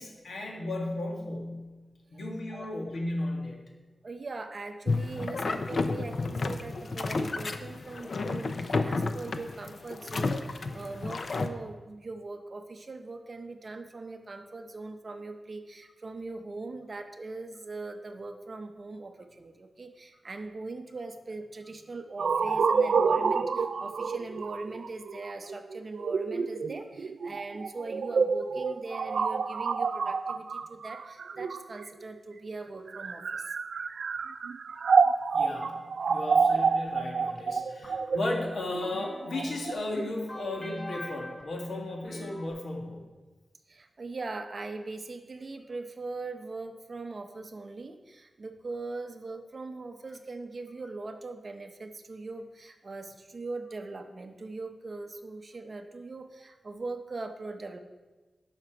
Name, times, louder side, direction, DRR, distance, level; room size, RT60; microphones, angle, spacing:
voice 1, 0.0-1.7 2.1-3.6 15.8-15.9 35.3-35.8 36.1-43.0, left 1 dB, 70° left, 1 dB, 1.7 m, -35 dB
voice 2, 4.0-33.5 43.7-57.8, right 3 dB, 40° right, 6 dB, 0.7 m, -40 dB
sound 1, 4.9-11.5, left 3 dB, 50° left, 0.5 m, -31 dB
sound 2, 22.2-32.0 32.8-39.7, right 5 dB, 75° right, 0.4 m, -28 dB
sound 3, 36.1-42.5, left 1 dB, 25° left, 1.4 m, -45 dB
11.5 x 5.9 x 4.6 m, 1.2 s
wide cardioid pair, 150°, 0 cm